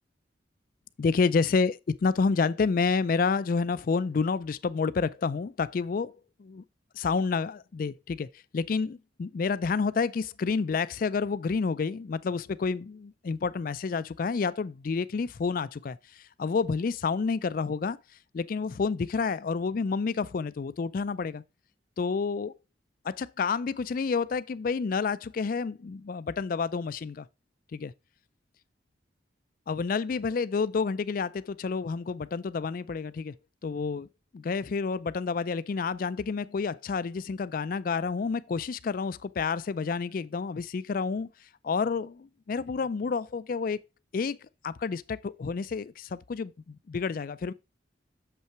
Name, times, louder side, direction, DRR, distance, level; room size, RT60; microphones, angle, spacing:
voice 1, 1.0-6.6 6.9-8.3 8.5-18.0 18.3-21.4 22.0-22.5 23.0-27.3 27.7-27.9 29.7-33.3 33.6-34.1 34.3-41.3 41.6-43.8 44.1-44.4 44.6-47.5, left 5 dB, 50° left, 0.4 m, -29 dB
6.8 x 5.6 x 4.5 m
head